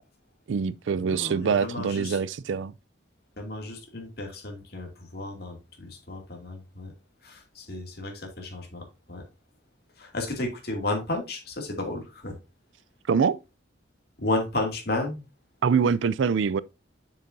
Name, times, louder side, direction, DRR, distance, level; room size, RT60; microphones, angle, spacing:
voice 1, 0.5-2.7 13.1-13.4 15.6-16.6, right 6 dB, 80° right, 0.4 m, -24 dB
voice 2, 1.0-2.2 3.4-6.9 7.2-9.2 10.0-12.4 14.2-15.2, left 2 dB, 55° left, 2.4 m, -33 dB
7.7 x 7.0 x 2.6 m
head